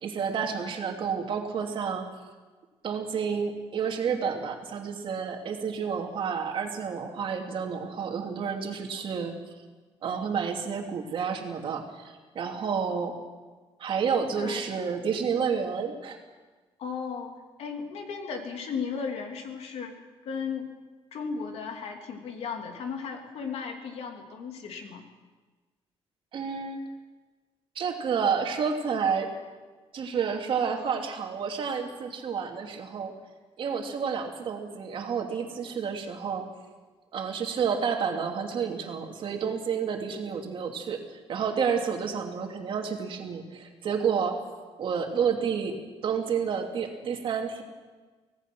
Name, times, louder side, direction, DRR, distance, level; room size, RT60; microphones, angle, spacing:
voice 1, 0.0-2.0 2.8-9.4 10.0-13.1 13.8-16.2 26.3-26.8 27.7-29.3 29.9-33.1 33.6-36.5 37.1-44.4 44.8-45.8 46.0-47.6, right 6 dB, 50° right, 3 dB, 2.7 m, -30 dB
voice 2, 14.4-14.7 16.8-17.3 17.6-20.0 20.2-20.7 21.1-25.0, left 5 dB, 70° left, 4 dB, 3.0 m, -35 dB
25.0 x 17.5 x 6.2 m, 1.3 s
cardioid pair, 165°, 11 cm